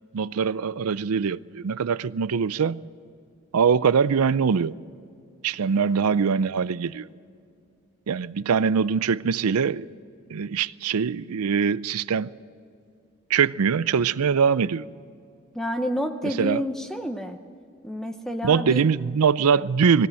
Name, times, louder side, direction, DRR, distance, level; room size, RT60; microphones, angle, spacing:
voice 1, 0.1-2.8 3.5-4.7 5.4-7.1 8.1-9.9 10.3-12.3 13.3-14.9 16.4-16.6 18.4-20.1, right 6 dB, 75° right, 0.5 m, -22 dB
voice 2, 15.5-17.4 17.8-18.8, equal, ahead, 0.7 m, -29 dB
20.5 x 17.0 x 7.6 m
head